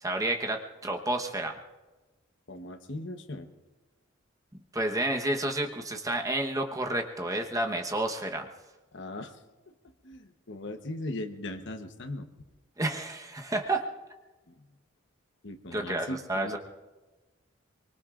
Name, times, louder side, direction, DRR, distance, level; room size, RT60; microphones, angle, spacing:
voice 1, 0.0-1.5 4.5-8.5 12.8-13.9 15.7-16.6, right 1 dB, 15° right, 3 dB, 1.1 m, -30 dB
voice 2, 2.5-3.5 8.9-9.4 9.7-9.8 10.0-12.3 14.5-14.7 15.4-16.6, left 1 dB, 60° left, 7 dB, 1.1 m, -39 dB
24.0 x 24.0 x 2.5 m, 1.2 s
head